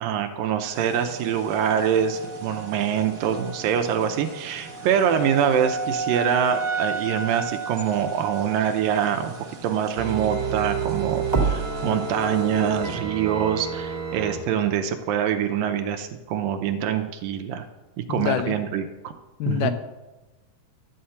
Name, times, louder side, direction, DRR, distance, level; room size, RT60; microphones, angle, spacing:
voice 1, 0.0-9.3 9.6-17.6 18.0-19.1 19.5-19.7, right 8 dB, 80° right, 6 dB, 2.3 m, -25 dB
sound 1, 0.6-12.9, right 4 dB, 50° right, 1.9 m, -34 dB
sound 2, 10.0-14.4 14.7-14.8, right 5 dB, 20° right, 1.1 m, -28 dB
voice 2, 18.1-18.6 19.4-19.7, left 10 dB, 90° left, 9 dB, 2.7 m, -25 dB
12.0 x 5.7 x 7.7 m, 1.1 s
omnidirectional pair, 4.3 m